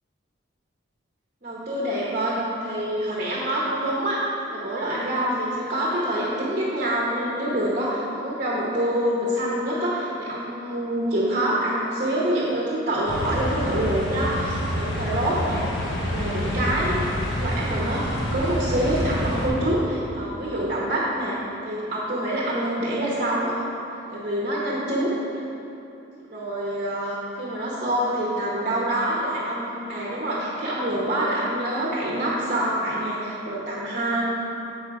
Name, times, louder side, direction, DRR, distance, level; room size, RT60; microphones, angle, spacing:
voice 1, 1.4-4.2 4.5-15.6 15.9-17.1 17.3-21.4 21.6-23.6 24.1-25.4 26.3-34.2, right 1 dB, 45° right, -6 dB, 1.0 m, -26 dB
sound 1, 13.1-19.5, equal, 75° left, 1.2 m, -27 dB
7.2 x 5.4 x 4.7 m, 2.9 s
head